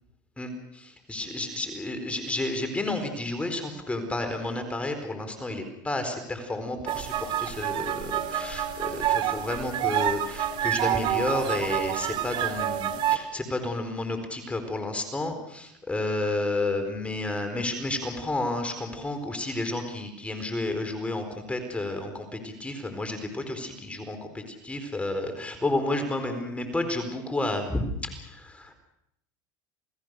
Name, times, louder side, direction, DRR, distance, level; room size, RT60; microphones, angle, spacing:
voice 1, 0.4-28.7, left 2 dB, 10° left, 6 dB, 4.3 m, -31 dB
sound 1, 6.9-13.2, right 11 dB, 55° right, 2.4 m, -28 dB
29.5 x 18.5 x 6.5 m, 0.76 s
supercardioid pair, 110°, 10 cm